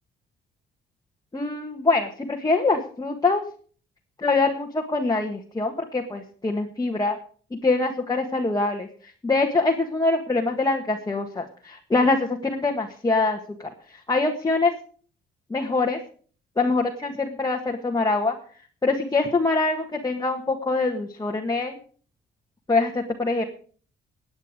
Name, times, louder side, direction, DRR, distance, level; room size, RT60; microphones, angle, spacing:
voice 1, 1.3-3.4 4.2-7.2 7.6-8.9 9.2-14.7 15.5-16.0 16.6-18.4 18.8-21.8 22.7-23.4, left 3 dB, 20° left, 1 dB, 1.7 m, -24 dB
17.0 x 9.1 x 5.1 m, 0.43 s
cardioid pair, 90°, 20 cm